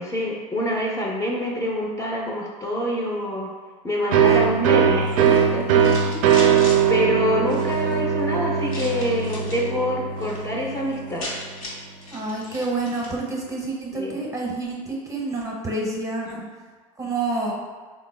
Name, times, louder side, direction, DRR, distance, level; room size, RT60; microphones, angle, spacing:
voice 1, 0.0-3.5 3.8-5.9 6.9-11.3 13.9-14.2 16.3-16.4, left 1 dB, 15° left, -3 dB, 0.5 m, -26 dB
sound 1, 4.1-11.6, right 7 dB, 70° right, 0.4 m, -21 dB
voice 2, 4.4-5.0 6.0-6.5 12.1-16.4 17.0-17.5, right 2 dB, 20° right, -1 dB, 0.7 m, -29 dB
sound 2, 5.0-6.8 7.4-7.9 8.7-9.7 10.0-10.4 10.7-10.8 11.0-13.2, left 1 dB, 90° left, 0.9 m, -37 dB
3.4 x 2.2 x 3.2 m, 1.4 s
hypercardioid pair, 90°, 18 cm